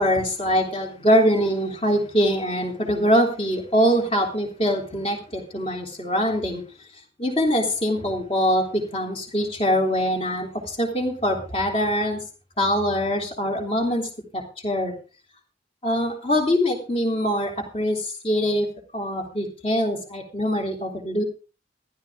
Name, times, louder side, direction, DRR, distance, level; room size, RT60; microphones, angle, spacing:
voice 1, 0.0-6.6 7.2-12.2 12.6-14.9 15.8-18.7 18.9-21.2, equal, 30° left, 1 dB, 3.4 m, -23 dB
15.0 x 12.5 x 3.7 m, 0.34 s
head